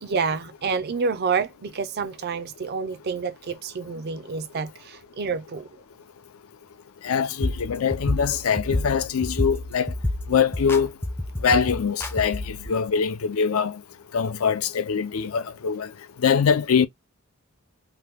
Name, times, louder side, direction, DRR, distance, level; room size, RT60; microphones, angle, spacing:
voice 1, 0.0-5.7, right 5 dB, 50° right, 0.5 m, -28 dB
voice 2, 7.0-9.9 10.3-10.9 11.4-13.8 14.1-15.9 16.2-16.9, left 6 dB, 80° left, 0.5 m, -23 dB
sound 1, 7.4-12.7, left 1 dB, 10° left, 0.4 m, -29 dB
2.9 x 2.2 x 3.4 m
head